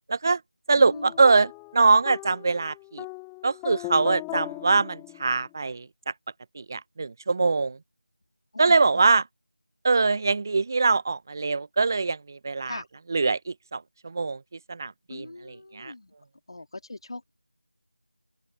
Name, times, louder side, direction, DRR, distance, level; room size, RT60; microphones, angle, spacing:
voice 1, 0.1-0.4 0.7-3.1 3.4-5.9 6.5-7.8 8.6-9.2 9.8-12.7 13.1-14.4 14.7-15.9, right 4 dB, 25° right, 0.9 m, -23 dB
voice 2, 0.7-1.1 8.5-9.0 12.6-12.9 15.1-16.1 16.5-17.3, left 2 dB, 50° left, 3.4 m, -40 dB
sound 1, 0.9-5.5, left 40 dB or more, 5° left, 3.2 m, -38 dB
open air
figure-of-eight pair, 170°, 4 cm